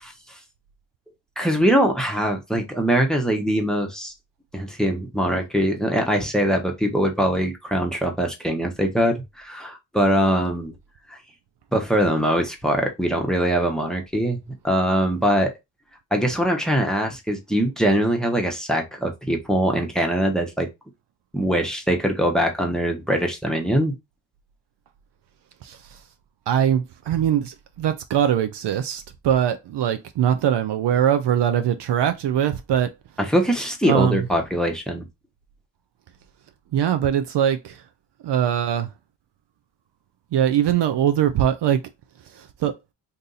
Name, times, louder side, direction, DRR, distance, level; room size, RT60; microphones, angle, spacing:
voice 1, 1.4-4.1 4.5-10.7 11.7-14.4 14.6-15.5 16.1-20.7 21.3-24.0 33.2-35.1, equal, ahead, 1.0 m, -22 dB
voice 2, 26.5-32.9 33.9-34.2 36.7-37.8 38.2-38.9 40.3-41.8 42.4-42.7, right 9 dB, 60° right, 0.6 m, -21 dB
2.7 x 2.7 x 3.9 m
cardioid pair, 70°, 47 cm